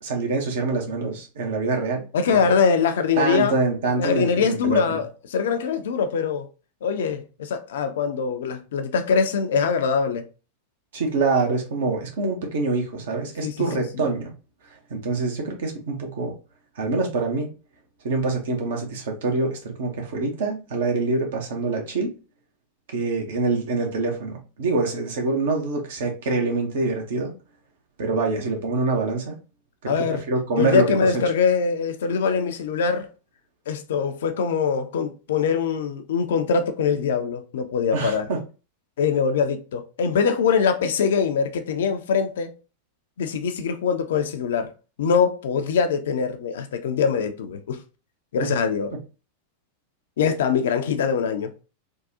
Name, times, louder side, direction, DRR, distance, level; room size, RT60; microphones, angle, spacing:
voice 1, 0.0-2.5 3.2-5.0 10.9-14.3 14.9-16.3 16.8-17.5 18.0-22.1 22.9-27.3 28.0-29.4 29.8-30.8 37.9-38.4 48.4-48.5, right 3 dB, 60° right, 0.9 m, -25 dB
voice 2, 2.1-3.6 4.0-6.5 6.8-10.3 13.4-13.8 29.9-30.2 30.6-33.1 33.7-38.3 39.0-42.5 43.2-44.7 45.0-47.8 48.3-48.9 50.2-51.5, left 6 dB, 60° left, 0.5 m, -23 dB
3.5 x 2.3 x 2.7 m
figure-of-eight pair, 90°, 0 cm